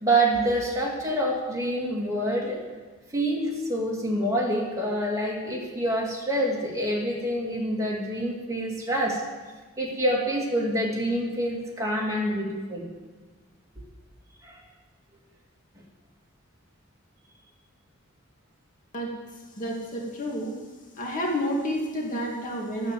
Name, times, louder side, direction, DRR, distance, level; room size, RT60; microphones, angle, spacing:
voice 1, 0.0-2.6 3.1-9.2 9.8-12.9 14.4-14.6, right 1 dB, 15° right, -3 dB, 3.0 m, -26 dB
voice 2, 19.6-20.5 20.9-22.9, equal, 40° left, -2 dB, 2.4 m, -29 dB
12.5 x 9.1 x 7.9 m, 1.3 s
head